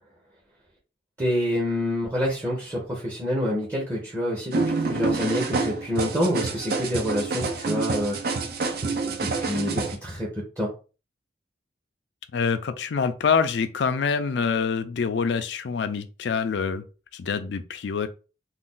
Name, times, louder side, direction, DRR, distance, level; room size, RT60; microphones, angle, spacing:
voice 1, 1.2-8.2 9.0-10.3 10.6-10.7, equal, 15° right, 0.7 m, -27 dB
sound 1, 4.5-9.9, right 4 dB, 55° right, 0.5 m, -27 dB
voice 2, 12.3-16.8 17.1-18.1, left 5 dB, 65° left, 0.4 m, -25 dB
2.5 x 2.3 x 3.7 m
head